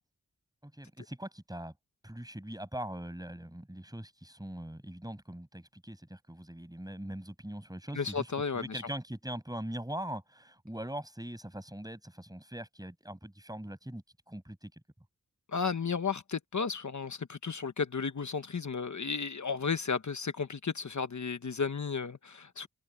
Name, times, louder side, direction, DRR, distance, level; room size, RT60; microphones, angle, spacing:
voice 1, 0.6-1.7 2.0-14.7, right 1 dB, 10° right, 7.3 m, -42 dB
voice 2, 7.9-8.8 15.5-22.7, left 5 dB, 60° left, 1.0 m, -33 dB
wide cardioid pair, 55°, 33 cm